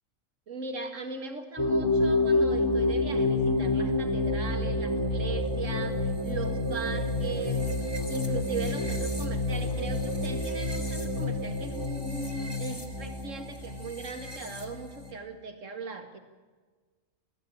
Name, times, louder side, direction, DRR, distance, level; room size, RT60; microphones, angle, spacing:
voice 1, 0.5-7.6 8.1-16.2, right 4 dB, 70° right, 7 dB, 2.3 m, -39 dB
sound 1, 1.6-15.1, left 2 dB, 20° left, 2.1 m, -29 dB
20.5 x 15.0 x 8.6 m, 1.4 s
omnidirectional pair, 1.4 m